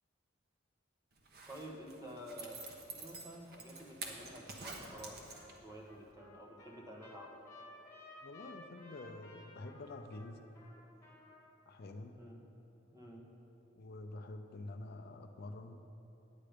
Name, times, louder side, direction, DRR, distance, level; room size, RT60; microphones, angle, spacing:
Zipper (clothing), 1.2-5.8 6.1-6.2, right 3 dB, 55° right, 1.1 m, -48 dB
voice 1, 1.5-2.6 2.9-5.2 5.6-7.5 12.2-12.4 12.9-13.3, equal, 15° right, 0 dB, 1.2 m, -50 dB
Trumpet, 4.8-5.0 5.3-11.5, left 2 dB, 15° left, 2.0 m, -56 dB
voice 2, 8.2-10.4 10.9-11.1 11.7-12.2 13.8-15.8, left 2 dB, 55° left, 6 dB, 0.5 m, -48 dB
9.5 x 8.9 x 5.1 m, 3.0 s
head